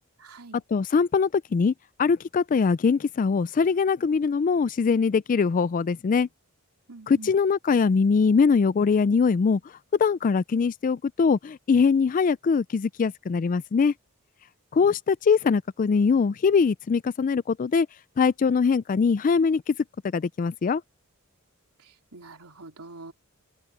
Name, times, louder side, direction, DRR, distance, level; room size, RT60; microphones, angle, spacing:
voice 1, 0.2-0.6 6.9-7.3 21.8-23.1, right 3 dB, 85° right, 3.1 m, -45 dB
voice 2, 0.7-1.7 2.0-6.3 7.1-9.6 10.0-13.9 14.7-17.9 18.2-19.6 20.1-20.8, left 5 dB, 40° left, 0.3 m, -22 dB
head